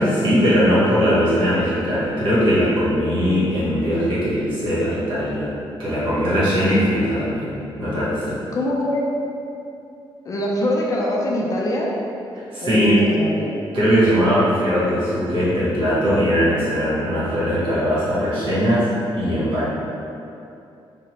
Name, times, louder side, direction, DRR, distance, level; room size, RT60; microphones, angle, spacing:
voice 1, 0.0-5.5 5.8-8.4 12.5-13.1 13.7-18.9 19.1-19.7, equal, 65° right, -10 dB, 1.2 m, -20 dB
voice 2, 8.5-9.1 10.3-11.9 12.6-13.5, left 1 dB, 40° left, -3 dB, 0.4 m, -23 dB
2.8 x 2.0 x 2.9 m, 2.7 s
cardioid pair, 120°, 9 cm